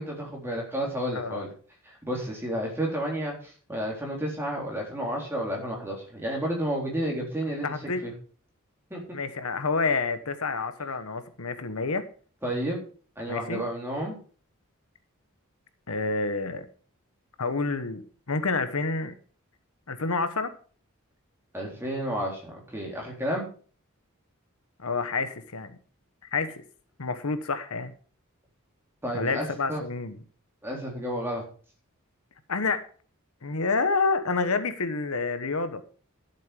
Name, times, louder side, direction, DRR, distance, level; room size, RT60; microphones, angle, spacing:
voice 1, 0.0-1.5 1.9-7.7 8.0-8.1 8.9-9.2 12.4-12.8 13.2-14.2 21.5-23.5 29.0-29.8 30.6-31.4, equal, 10° right, -1 dB, 3.8 m, -31 dB
voice 2, 1.1-1.5 7.5-8.1 9.1-12.1 13.3-13.6 15.9-16.7 17.4-19.1 19.9-20.5 24.8-25.8 26.3-26.6 27.0-27.9 29.1-30.2 32.5-32.8 33.4-35.8, left 4 dB, 90° left, 11 dB, 1.2 m, -28 dB
12.0 x 7.5 x 5.1 m, 0.42 s
head